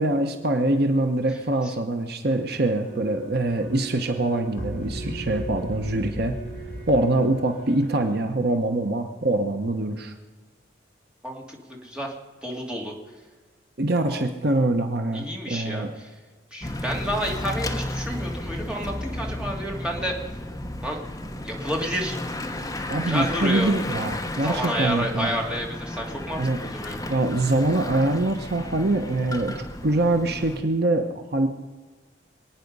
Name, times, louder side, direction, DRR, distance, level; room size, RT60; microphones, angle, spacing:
voice 1, 0.0-6.4 6.9-10.1 13.8-15.9 22.9-25.3 26.4-26.6 27.1-31.5, right 2 dB, 55° right, 6 dB, 1.0 m, -24 dB
sound 1, 2.8-8.2, right 1 dB, 60° left, 5.5 m, -37 dB
voice 2, 11.2-12.1 12.4-12.9 14.1-14.2 15.1-16.1 16.5-20.2 20.8-21.0 21.4-22.2 23.1-23.7 24.4-27.0, equal, 5° right, -1 dB, 2.5 m, -30 dB
Bicycle / Mechanisms, 16.6-30.6, left 1 dB, 20° left, 0.9 m, -33 dB
26.0 x 9.3 x 5.4 m, 1.3 s
head